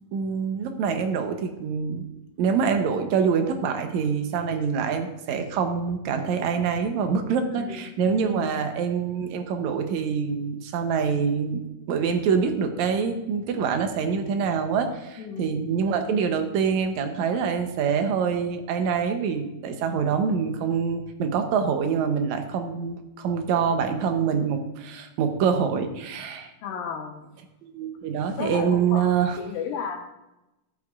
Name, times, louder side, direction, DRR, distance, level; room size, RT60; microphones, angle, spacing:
voice 1, 0.1-2.1 2.4-11.6 11.9-26.5 27.6-29.4, right 6 dB, 70° right, 6 dB, 1.9 m, -25 dB
voice 2, 7.5-8.0 8.3-8.7 15.2-15.7 26.6-27.2 28.4-29.1 29.4-30.1, left 6 dB, 80° left, 4 dB, 2.7 m, -34 dB
13.5 x 8.4 x 2.4 m, 0.95 s
omnidirectional pair, 4.1 m